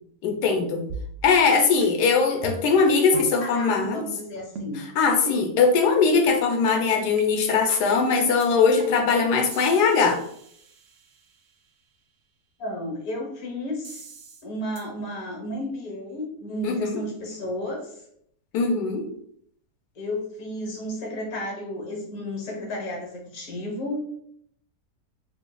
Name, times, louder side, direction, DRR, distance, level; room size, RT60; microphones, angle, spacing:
voice 1, 0.2-0.8 1.2-4.0 5.0-10.2 16.6-17.0 18.5-19.1, left 5 dB, 90° left, 4 dB, 1.2 m, -21 dB
sound 1, 0.9-1.5 1.8-1.9 2.4-2.8 3.1-3.3 3.8-4.0 4.5-4.8 5.3-5.4 6.0-6.1 6.7-6.8 7.2-7.3 7.7-7.9 8.4-8.5 8.8-9.1 9.5-11.3 13.8-14.4 14.8-14.9, right 2 dB, 90° right, 0.5 m, -39 dB
voice 2, 3.1-4.8 12.6-14.0 14.4-18.0 19.9-24.0, left 1 dB, 70° left, 0 dB, 1.4 m, -33 dB
4.5 x 2.6 x 2.2 m, 0.69 s
omnidirectional pair, 1.7 m